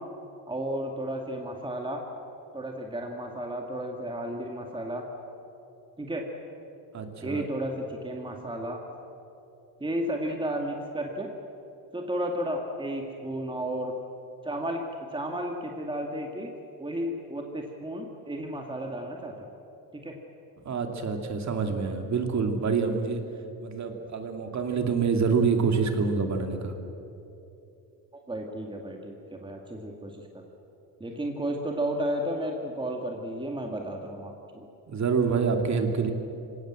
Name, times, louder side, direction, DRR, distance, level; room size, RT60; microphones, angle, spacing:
voice 1, 0.5-2.0 2.5-5.0 6.0-6.2 7.2-8.8 9.8-11.3 11.9-13.9 14.4-14.8 15.1-16.5 16.8-19.3 19.9-20.2 28.1-30.4 31.0-34.7, right 1 dB, 15° right, 1 dB, 2.3 m, -33 dB
voice 2, 6.9-7.4 20.6-23.2 23.6-26.7 34.9-36.1, right 5 dB, 50° right, 4 dB, 2.7 m, -26 dB
25.5 x 17.5 x 7.7 m, 2.8 s
cardioid pair, 105°, 37 cm